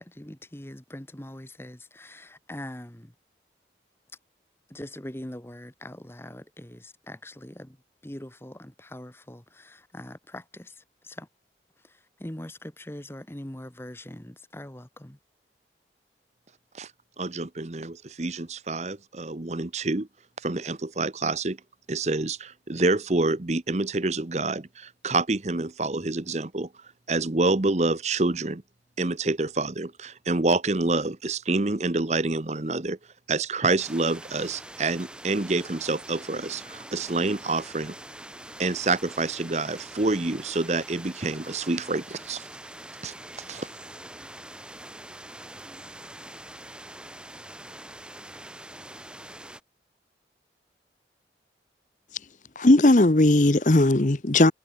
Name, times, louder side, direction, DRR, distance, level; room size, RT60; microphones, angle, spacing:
voice 1, 0.0-3.1 4.7-7.8 8.0-11.3 11.8-15.2, left 1 dB, 15° left, 1.2 m, -42 dB
voice 2, 17.2-20.1 20.4-21.6 21.9-26.7 27.1-28.6 29.0-33.0 33.3-37.9 38.6-42.5 43.0-43.1 43.5-43.7, right 3 dB, 40° right, 0.9 m, -27 dB
sound 1, 33.8-49.6, right 1 dB, 5° right, 2.7 m, -44 dB
voice 3, 52.6-54.5, left 2 dB, 45° left, 1.0 m, -18 dB
head